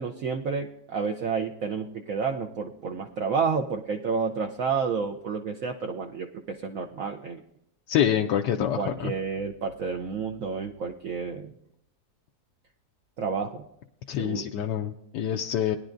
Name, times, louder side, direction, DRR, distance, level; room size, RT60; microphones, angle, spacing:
voice 1, 0.0-7.4 8.8-11.5 13.2-13.6 14.2-14.4, right 5 dB, 65° right, 2 dB, 0.9 m, -30 dB
voice 2, 7.9-9.1 14.1-15.8, left 10 dB, 85° left, 3 dB, 1.2 m, -26 dB
19.5 x 10.5 x 2.6 m, 0.77 s
omnidirectional pair, 1.8 m